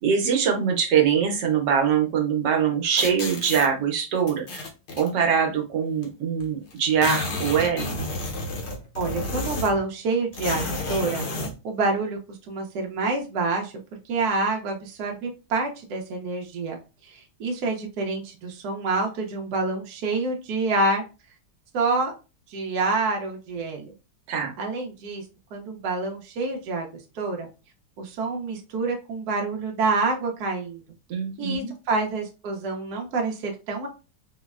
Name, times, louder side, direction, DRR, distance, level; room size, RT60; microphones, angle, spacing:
voice 1, 0.0-4.6 5.0-8.0 24.3-24.5 31.1-31.7, right 7 dB, 90° right, 2 dB, 1.4 m, -23 dB
sound 1, 3.0-3.7 4.3-5.1 6.0-6.1 6.4-6.5 6.7-9.9 10.3-11.6, left 2 dB, 55° left, 0.9 m, -31 dB
voice 2, 9.0-11.2 11.6-13.7 14.0-21.0 21.7-22.1 22.5-23.9 24.6-25.2 25.5-26.9 27.1-27.5 28.0-30.8 31.4-33.9, right 3 dB, 70° right, 1 dB, 1.2 m, -27 dB
4.3 x 2.0 x 2.3 m, 0.30 s
omnidirectional pair, 1.8 m